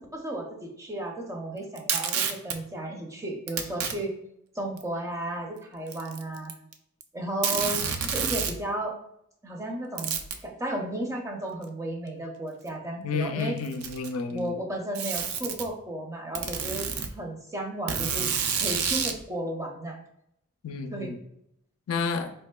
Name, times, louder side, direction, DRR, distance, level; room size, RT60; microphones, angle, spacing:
voice 1, 0.0-4.1 4.5-6.5 7.1-9.0 9.4-13.6 14.3-18.3 18.6-20.0 20.9-21.1, right 1 dB, 15° right, 1 dB, 0.5 m, -34 dB
Packing tape duct tape, 1.8-2.6 3.5-3.9 4.8-4.9 5.9-6.7 7.0-7.1 7.4-8.6 10.0-10.4 11.6-11.7 12.7-12.8 13.6-14.2 14.9-15.7 16.3-17.1 17.9-19.2, right 7 dB, 80° right, 0.4 m, -29 dB
voice 2, 13.0-14.5 20.6-21.2 21.9-22.3, left 5 dB, 90° left, 7 dB, 0.4 m, -30 dB
4.5 x 2.9 x 2.2 m, 0.75 s
head